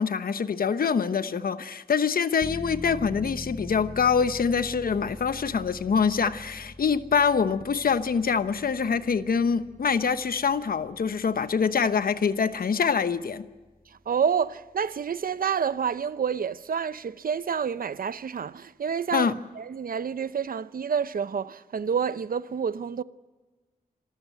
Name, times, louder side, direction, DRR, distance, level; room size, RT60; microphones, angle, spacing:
voice 1, 0.0-13.5 19.1-19.3, left 6 dB, 80° left, 1.0 m, -25 dB
sound 1, 2.4-14.9 15.3-15.4, left 1 dB, 20° left, 1.6 m, -44 dB
voice 2, 14.1-23.0, right 7 dB, 75° right, 0.7 m, -28 dB
26.5 x 14.0 x 9.1 m
wide cardioid pair, 85°, 15 cm